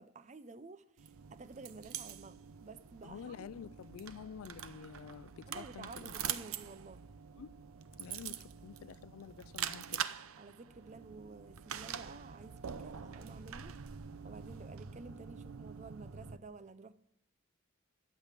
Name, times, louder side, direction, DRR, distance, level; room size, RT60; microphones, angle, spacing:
voice 1, 0.0-3.7 5.5-7.1 8.3-8.5 10.4-13.8 14.2-16.9, right 3 dB, 30° right, 0.5 m, -52 dB
sound 1, 1.0-16.4, right 8 dB, 75° right, 0.6 m, -45 dB
voice 2, 3.0-6.1 7.4-7.5 8.0-10.0, left 7 dB, 80° left, 0.4 m, -49 dB
12.0 x 7.5 x 7.4 m
head